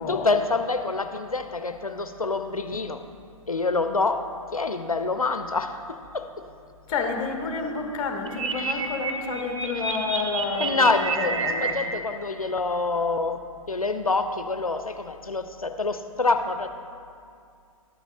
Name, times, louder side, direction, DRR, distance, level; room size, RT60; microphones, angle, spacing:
voice 1, 0.1-3.0 3.5-4.2 4.5-6.3 8.6-8.8 10.6-16.7, left 3 dB, 90° left, 8 dB, 0.5 m, -26 dB
voice 2, 6.9-11.8, left 4 dB, 25° left, 3 dB, 1.0 m, -29 dB
sound 1, 8.3-11.7, right 4 dB, 60° right, 1.1 m, -29 dB
12.0 x 8.8 x 2.6 m, 2.3 s
figure-of-eight pair, 120°, 18 cm